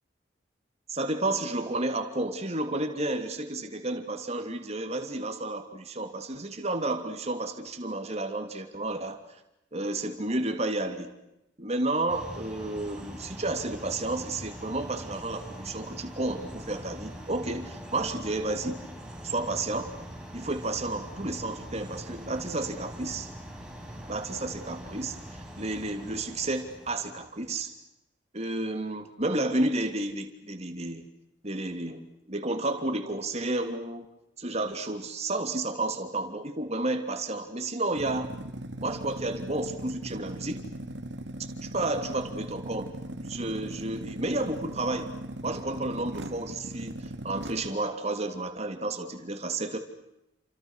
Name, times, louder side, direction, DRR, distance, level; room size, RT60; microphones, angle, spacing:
voice 1, 0.9-9.2 9.7-11.1 11.6-18.8 19.2-19.9 20.3-23.3 24.1-27.7 28.3-31.1 31.4-34.0 34.4-38.3 38.8-40.7 41.4-45.1 45.4-49.8, right 2 dB, 35° right, 6 dB, 3.1 m, -31 dB
sound 1, 12.1-27.6, equal, 5° right, 5.5 m, -43 dB
sound 2, 37.9-47.7, right 1 dB, 75° right, 2.3 m, -39 dB
29.5 x 27.0 x 6.5 m, 0.86 s
head